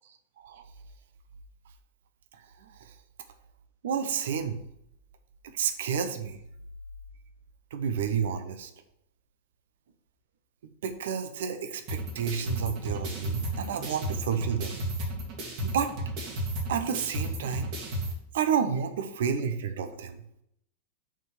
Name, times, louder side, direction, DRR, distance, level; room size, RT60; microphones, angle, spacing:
voice 1, 3.8-4.6 5.5-6.4 7.7-8.7 10.8-14.8 15.7-15.9 16.7-17.7 18.3-20.2, right 7 dB, 60° right, 8 dB, 0.8 m, -30 dB
sound 1, 11.9-18.1, right 1 dB, 45° right, 2.2 m, -33 dB
6.2 x 4.5 x 6.4 m, 0.76 s
figure-of-eight pair, 95°, 0 cm